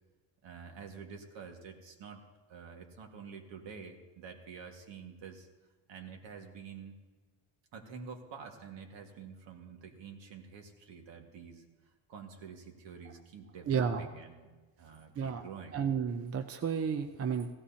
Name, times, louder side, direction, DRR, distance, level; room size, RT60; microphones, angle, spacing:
voice 1, 0.4-2.2 2.5-5.5 5.9-6.9 7.7-11.7 12.1-14.5 14.8-15.9, right 6 dB, 60° right, 3 dB, 1.9 m, -48 dB
voice 2, 13.7-14.1 15.2-15.4 15.7-17.5, right 7 dB, 30° right, 6 dB, 0.5 m, -32 dB
17.0 x 16.0 x 2.8 m, 1.3 s
cardioid pair, 150°, 50 cm